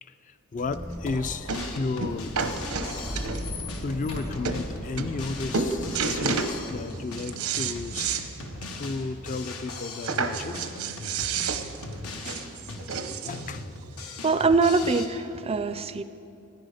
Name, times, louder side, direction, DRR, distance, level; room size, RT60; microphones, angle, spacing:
voice 1, 0.0-2.3 3.8-8.2 8.5-10.6 11.4-11.5 13.0-13.7, left 3 dB, 35° left, 12 dB, 0.4 m, -34 dB
Squeak, 0.5-7.0, left 1 dB, 65° left, 2.4 m, -37 dB
sound 1, 0.7-0.8 1.5-1.7 2.0-3.6 4.1-4.2 4.4-4.6 5.0-5.3 5.5-6.5 7.0-8.3 8.6-8.7 9.0-9.1 10.0-13.5 14.3-14.4, right 5 dB, 90° right, 0.9 m, -30 dB
Drum kit, 1.5-15.1, left 2 dB, 90° left, 1.3 m, -39 dB
voice 2, 14.2-16.0, right 4 dB, 25° right, 12 dB, 0.4 m, -23 dB
16.5 x 10.5 x 5.0 m, 2.6 s
head